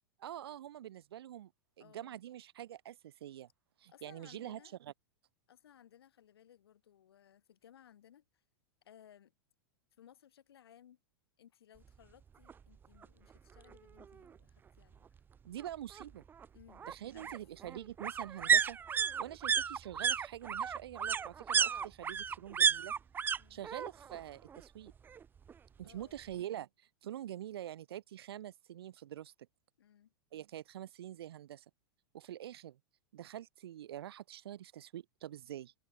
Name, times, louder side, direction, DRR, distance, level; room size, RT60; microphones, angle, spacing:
voice 1, 0.2-1.5 1.8-3.5 3.8-4.9 15.4-16.2 16.9-18.8 19.2-22.9 23.5-24.9 25.8-29.3 30.3-31.6 32.1-32.8 33.1-35.7, right 12 dB, 75° right, 0.5 m, -45 dB
voice 2, 1.8-2.2 3.9-4.7 5.5-8.2 8.8-9.3 10.0-11.0 11.4-15.1 16.5-17.3 23.4-23.6 25.8-26.4 29.8-30.1, left 10 dB, 75° left, 5.9 m, -61 dB
sound 1, 12.5-12.6 13.0-13.1 13.3-14.3 15.6-23.4 23.6-24.2 24.5-25.5 25.8-25.9, right 7 dB, 15° right, 0.3 m, -33 dB
hypercardioid pair, 100°, 13 cm